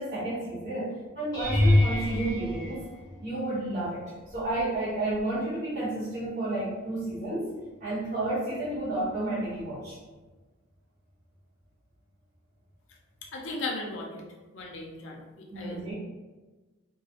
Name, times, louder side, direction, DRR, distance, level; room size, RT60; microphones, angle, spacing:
voice 1, 0.0-2.9 3.2-4.0 4.3-7.5 7.8-10.0 15.5-15.9, right 2 dB, 45° right, -13 dB, 0.8 m, -31 dB
sound 1, 1.3-3.6 4.3-4.7 5.1-5.3 9.6-9.7, left 1 dB, 15° left, 0.6 m, -26 dB
voice 2, 13.3-14.2 14.5-15.8, left 2 dB, 60° left, -1 dB, 0.4 m, -36 dB
2.2 x 2.0 x 2.7 m, 1.2 s
head